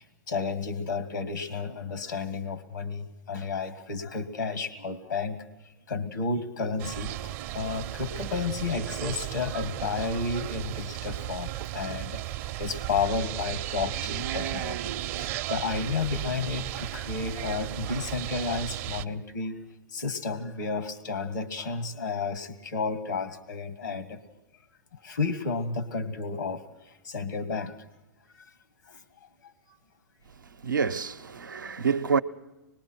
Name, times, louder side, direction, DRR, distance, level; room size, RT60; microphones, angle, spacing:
voice 1, 0.3-5.4 5.9-19.6 19.9-24.2 25.0-26.6 27.0-27.7 28.9-29.0, left 4 dB, 90° left, 1.5 m, -32 dB
sound 1, 6.8-19.1, right 15 dB, 45° right, 0.6 m, -35 dB
voice 2, 30.6-32.2, right 5 dB, 90° right, 0.7 m, -27 dB
25.0 x 20.5 x 6.0 m
hypercardioid pair, 110°, 10 cm